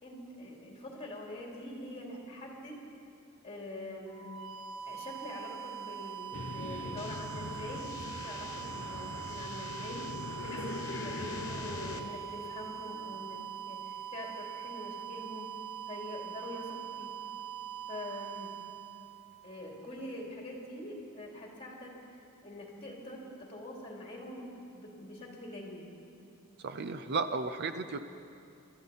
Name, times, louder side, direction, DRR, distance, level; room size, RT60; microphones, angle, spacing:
voice 1, 0.0-2.8 3.4-4.3 4.9-13.4 13.6-15.5 15.9-17.1 17.9-18.5 19.4-21.9 22.4-24.5 24.7-25.8, left 1 dB, 30° left, -2 dB, 2.8 m, -44 dB
sound 1, 4.1-19.9, right 8 dB, 85° right, 0.9 m, -43 dB
sound 2, 6.3-12.0, left 3 dB, 65° left, 0.7 m, -42 dB
sound 3, 7.0-12.0, left 5 dB, 85° left, 1.2 m, -47 dB
voice 2, 26.6-28.0, right 4 dB, 50° right, 10 dB, 0.5 m, -34 dB
24.5 x 13.5 x 4.1 m, 2.5 s
head